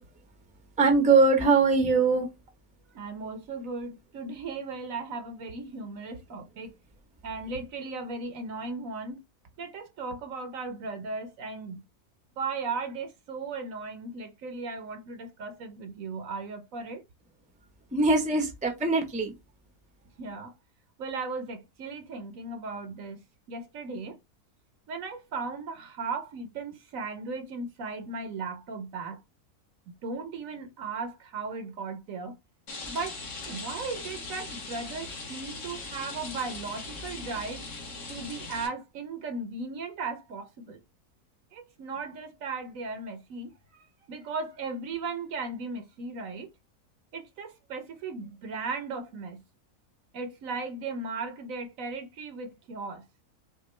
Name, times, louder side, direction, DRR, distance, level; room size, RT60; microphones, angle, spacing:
voice 1, 0.8-2.3 17.9-19.3, right 3 dB, 5° right, 0.6 m, -22 dB
voice 2, 2.9-6.7 7.2-9.2 9.6-11.8 12.4-17.0 20.2-20.5 21.0-23.2 23.5-24.2 24.9-29.2 30.0-32.3 32.9-37.6 38.1-40.8 41.5-46.5 47.1-49.4 50.1-53.0, right 4 dB, 65° right, 1.1 m, -36 dB
Rain, 32.7-38.7, left 3 dB, 55° left, 1.7 m, -40 dB
5.8 x 2.4 x 3.1 m
omnidirectional pair, 1.6 m